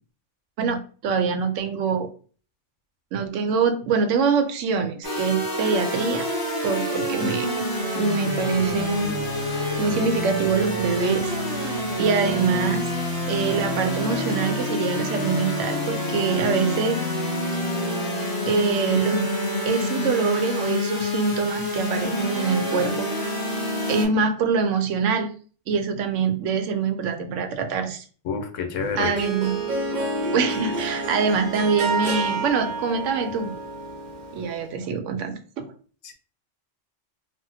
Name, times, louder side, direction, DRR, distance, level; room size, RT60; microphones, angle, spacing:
voice 1, 0.6-2.1 3.1-6.3 6.6-7.5 7.9-9.2 9.8-12.9 13.3-17.0 18.5-19.3 19.6-23.3 23.9-25.3 25.7-28.0 28.9-29.6 30.3-33.5 34.3-35.7, right 5 dB, 80° right, 0.9 m, -24 dB
sound 1, 5.0-24.1, left 1 dB, 20° left, 0.7 m, -27 dB
voice 2, 28.2-29.1 36.0-36.1, left 5 dB, 85° left, 1.0 m, -28 dB
Harp, 28.8-34.6, right 2 dB, 45° right, 0.7 m, -29 dB
3.5 x 2.0 x 2.6 m
omnidirectional pair, 1.3 m